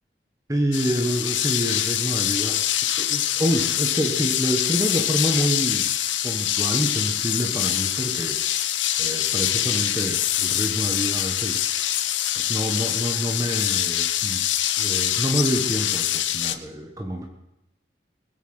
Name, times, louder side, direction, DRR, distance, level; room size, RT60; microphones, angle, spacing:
voice 1, 0.5-5.9 6.2-11.7 12.3-14.4 14.8-17.3, equal, 20° right, 2 dB, 1.3 m, -27 dB
sound 1, 0.7-16.6, left 12 dB, 90° left, 0.8 m, -24 dB
21.0 x 8.4 x 6.1 m, 0.87 s
head